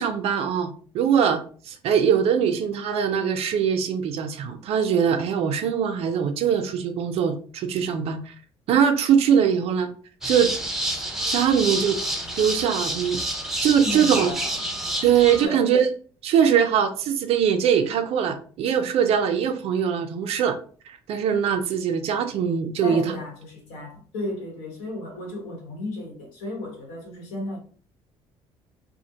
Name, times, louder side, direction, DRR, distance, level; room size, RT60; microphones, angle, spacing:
voice 1, 0.0-8.3 8.7-9.9 10.2-10.5 11.3-12.0 12.4-13.2 13.6-14.3 15.0-15.9 16.2-20.5 20.9-23.2, right 8 dB, 65° right, 0.5 m, -22 dB
sound 1, 10.2-15.5, right 1 dB, 5° right, 0.5 m, -28 dB
voice 2, 13.8-14.6 15.4-15.7 22.8-27.6, left 1 dB, 85° left, 1.1 m, -34 dB
2.4 x 2.1 x 2.8 m
supercardioid pair, 85°, 11 cm